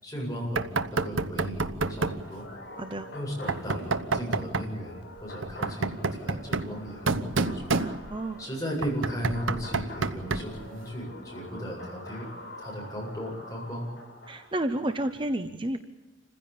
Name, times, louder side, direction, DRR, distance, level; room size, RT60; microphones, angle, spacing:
voice 1, 0.0-2.5 3.1-7.7 8.4-12.3 12.6-13.9, equal, 20° left, -2 dB, 8.0 m, -36 dB
Knock, 0.6-2.3 3.5-4.8 5.4-8.3 8.8-10.6, right 3 dB, 85° right, 1.1 m, -29 dB
sound 1, 1.8-14.7, left 1 dB, 55° left, 7.8 m, -46 dB
voice 2, 2.8-3.1 8.1-8.4 14.3-15.8, right 1 dB, 25° right, 8 dB, 0.9 m, -30 dB
28.0 x 15.5 x 8.7 m, 1.1 s
head